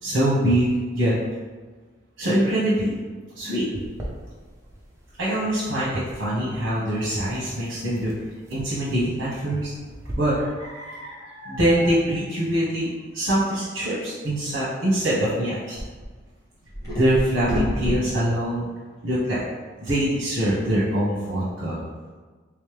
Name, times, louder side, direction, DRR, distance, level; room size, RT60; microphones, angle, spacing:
voice 1, 0.0-1.1 2.2-3.0 3.3-3.7 5.2-8.1 8.5-9.7 10.1-12.9 13.1-15.8 16.9-18.7 19.0-19.4 19.8-21.8, right 1 dB, 60° right, -9 dB, 1.1 m, -24 dB
sound 1, 3.7-10.1, right 1 dB, 15° right, 0.6 m, -43 dB
sound 2, 12.3-12.4 15.8-16.0 16.6-18.0, left 1 dB, 15° left, 0.9 m, -27 dB
3.4 x 3.1 x 3.4 m, 1.4 s
head